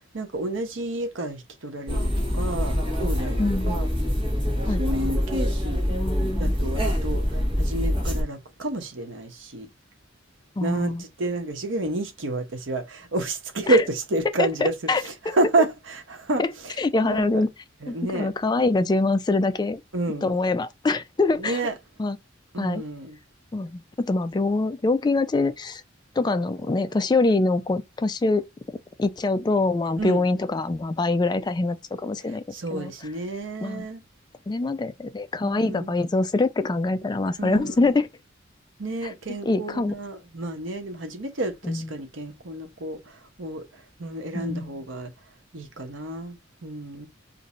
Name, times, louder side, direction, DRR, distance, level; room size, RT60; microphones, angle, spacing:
voice 1, 0.1-3.4 3.6-3.9 4.8-5.9 6.4-9.7 10.6-16.7 17.0-17.4 17.8-18.3 19.9-20.4 21.4-21.7 22.5-23.2 30.0-30.2 32.5-34.0 35.4-36.0 37.4-37.9 38.8-45.1 45.5-46.4 46.6-47.1, right 2 dB, 75° right, 0.9 m, -30 dB
sound 1, 1.9-8.2, equal, 25° right, 1.2 m, -25 dB
voice 2, 3.4-3.8 4.7-4.8 5.9-6.6 10.6-11.0 13.7-13.8 14.4-15.4 16.4-16.5 16.8-17.5 17.9-19.8 20.2-21.6 22.0-22.2 22.6-22.8 23.5-25.8 26.2-28.4 29.0-32.4 32.7-32.9 33.6-33.8 34.5-38.1 39.0-39.1 39.4-40.0 41.6-41.9 44.3-44.7, left 3 dB, 20° left, 0.3 m, -24 dB
2.6 x 2.6 x 4.1 m
head